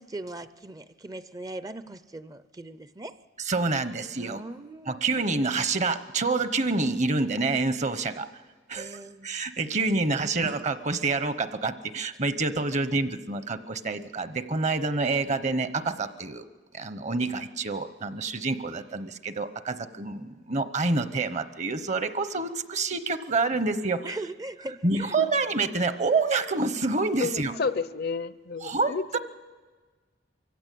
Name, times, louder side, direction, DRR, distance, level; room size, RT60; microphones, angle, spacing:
voice 1, 0.0-3.1 4.2-5.1 8.8-9.3 10.2-10.3 24.0-25.2, right 2 dB, 20° right, 13 dB, 0.6 m, -40 dB
voice 2, 3.5-4.4 4.9-8.3 8.7-9.0 9.2-16.4 16.7-24.0 24.8-27.6 28.6-29.2, right 3 dB, 40° right, 12 dB, 1.0 m, -27 dB
voice 3, 27.2-29.2, left 4 dB, 60° left, 15 dB, 0.6 m, -31 dB
23.5 x 15.5 x 8.5 m, 1.4 s
head